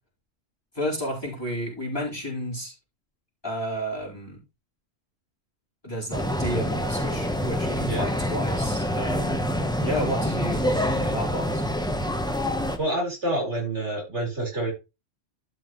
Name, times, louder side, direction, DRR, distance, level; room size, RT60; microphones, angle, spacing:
voice 1, 0.7-2.7 3.4-4.4 5.8-9.5 9.8-11.6, equal, 20° left, -4 dB, 4.7 m, -31 dB
sound 1, 6.1-12.8, equal, 5° left, 1.0 m, -26 dB
voice 2, 12.8-14.7, right 1 dB, 65° right, -1 dB, 4.9 m, -28 dB
12.5 x 6.2 x 3.1 m, 0.26 s
omnidirectional pair, 1.3 m